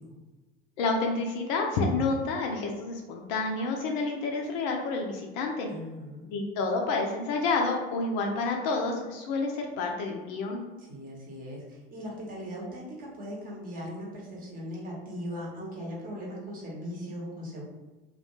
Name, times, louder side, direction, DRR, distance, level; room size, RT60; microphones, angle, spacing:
voice 1, 0.8-5.7 6.3-10.6, left 3 dB, 45° left, 1 dB, 0.4 m, -29 dB
voice 2, 5.7-6.3 10.8-17.6, equal, 30° right, -3 dB, 0.9 m, -39 dB
2.3 x 2.2 x 2.9 m, 1.2 s
figure-of-eight pair, 70°, 29 cm